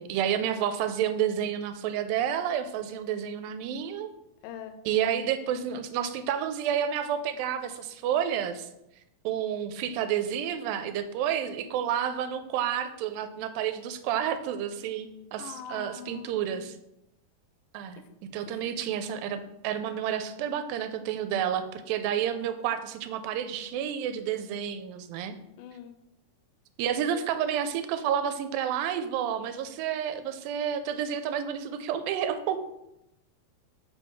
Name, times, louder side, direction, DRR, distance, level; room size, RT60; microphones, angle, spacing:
voice 1, 0.0-4.1 4.9-8.7 9.2-16.8 17.7-18.0 18.3-25.4 26.8-32.6, right 9 dB, 85° right, 10 dB, 2.2 m, -30 dB
voice 2, 4.4-4.7 15.4-16.7 25.6-26.0, left 9 dB, 85° left, 8 dB, 2.4 m, -43 dB
5.3 x 4.4 x 4.5 m, 0.86 s
omnidirectional pair, 4.1 m